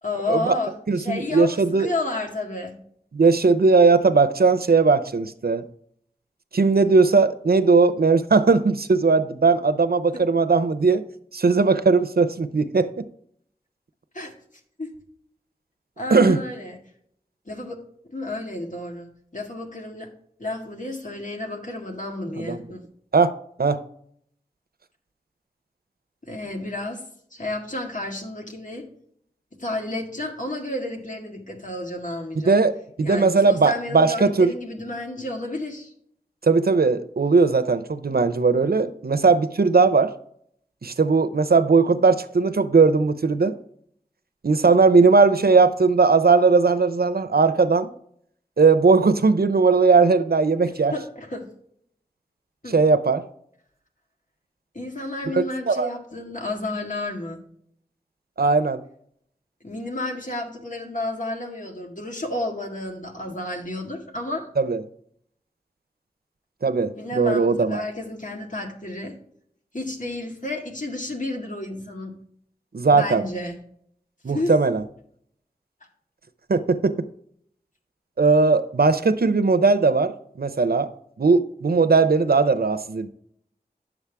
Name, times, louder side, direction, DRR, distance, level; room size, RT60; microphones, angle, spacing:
voice 1, 0.0-2.8 10.1-10.2 14.1-14.3 14.8-14.9 16.0-16.8 17.5-17.8 18.1-20.1 20.4-22.8 26.2-27.0 27.3-28.9 29.6-32.6 33.0-35.9 50.9-51.5 52.6-52.8 54.7-57.4 59.6-64.5 67.0-69.2 69.7-72.2 72.9-73.6 74.3-74.5, left 2 dB, 55° left, 1 dB, 1.9 m, -31 dB
voice 2, 0.9-1.9 3.1-5.6 6.5-11.0 11.3-13.0 16.1-16.4 22.4-22.6 23.1-23.3 23.6-23.8 32.5-34.5 36.4-40.1 40.8-43.6 44.4-47.9 48.6-50.9 52.7-53.2 55.3-55.9 58.4-58.8 64.6-64.8 66.6-67.8 72.7-73.2 74.2-74.8 76.5-76.9 78.2-80.1 80.4-80.9 81.2-83.1, right 4 dB, 75° right, 12 dB, 0.7 m, -18 dB
10.0 x 7.1 x 3.4 m, 0.66 s
wide cardioid pair, 45°, 16 cm